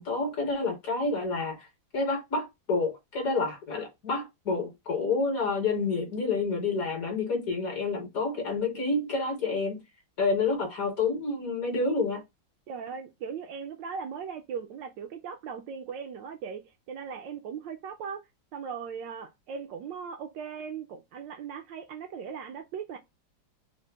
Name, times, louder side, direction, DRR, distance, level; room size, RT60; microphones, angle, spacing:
voice 1, 0.0-1.7 1.9-9.8 10.2-12.2, left 3 dB, 55° left, 1.1 m, -29 dB
voice 2, 12.7-16.6 16.9-18.2 18.5-23.0, right 6 dB, 75° right, 1.1 m, -38 dB
3.9 x 2.1 x 3.2 m
omnidirectional pair, 2.2 m